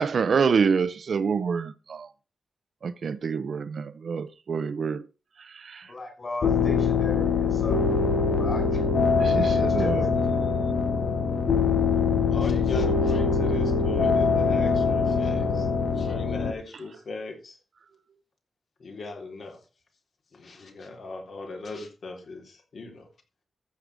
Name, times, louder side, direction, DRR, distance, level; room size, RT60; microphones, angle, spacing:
voice 1, 0.0-2.1 2.8-5.0 5.6-5.9 9.2-10.0, right 5 dB, 60° right, 0.7 m, -26 dB
voice 2, 5.9-7.8 8.3-8.8 9.4-10.1, left 2 dB, 35° left, 4.7 m, -37 dB
sound 1, 6.4-16.5, left 5 dB, 85° left, 1.7 m, -23 dB
voice 3, 12.2-17.6 18.8-19.6 20.3-23.1, left 3 dB, 60° left, 3.5 m, -39 dB
14.0 x 6.7 x 4.9 m
wide cardioid pair, 140°, 0 cm